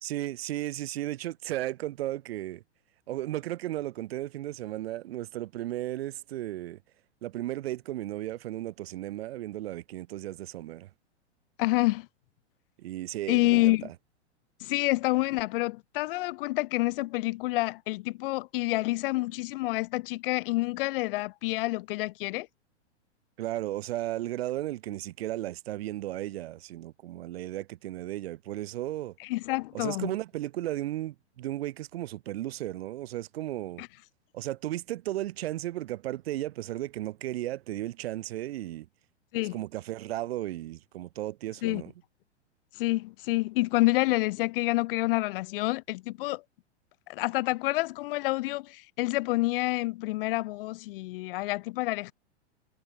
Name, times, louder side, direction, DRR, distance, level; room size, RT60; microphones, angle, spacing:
voice 1, 0.0-2.6 3.1-6.8 7.2-10.9 12.8-13.8 23.4-29.1 29.7-33.8 34.3-38.9 39.5-41.9, right 15 dB, 60° right, 4.5 m, -35 dB
voice 2, 11.6-12.1 13.3-13.9 14.6-22.5 29.2-30.1 33.8-33.9 39.3-39.6 41.6-41.8 42.7-46.4 47.1-52.1, left 20 dB, 50° left, 2.7 m, -28 dB
hypercardioid pair, 110°, 34 cm